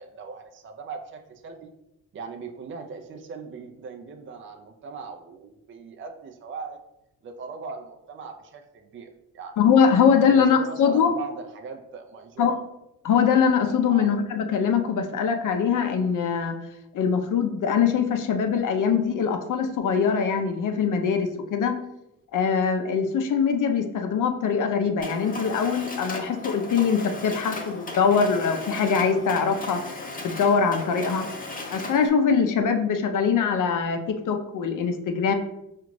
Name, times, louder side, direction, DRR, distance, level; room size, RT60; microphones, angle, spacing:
voice 1, 0.0-1.7 2.1-6.8 7.2-9.6 10.3-12.6 13.9-14.1, right 4 dB, 35° right, 4 dB, 0.5 m, -39 dB
voice 2, 9.6-11.1 12.4-12.5 13.0-16.6 16.9-21.8 22.3-29.8 30.2-31.3 31.7-35.3, left 6 dB, 60° left, 6 dB, 0.6 m, -22 dB
Mechanisms, 25.0-32.1, left 2 dB, 25° left, 0.8 m, -36 dB
4.8 x 2.5 x 3.1 m, 0.87 s
cardioid pair, 70°, 36 cm